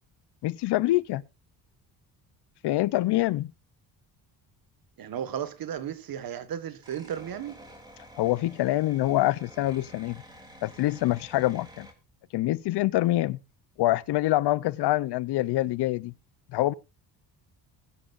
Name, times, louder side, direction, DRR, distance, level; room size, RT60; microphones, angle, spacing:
voice 1, 0.4-1.2 2.6-3.5 8.2-10.2 10.6-11.9 12.3-13.4 13.8-16.1 16.5-16.7, left 16 dB, 70° left, 0.6 m, -25 dB
voice 2, 5.0-7.6, right 9 dB, 55° right, 1.6 m, -34 dB
sound 1, 6.8-11.9, equal, 10° right, 3.1 m, -50 dB
21.5 x 10.0 x 2.5 m
cardioid pair, 130°, 42 cm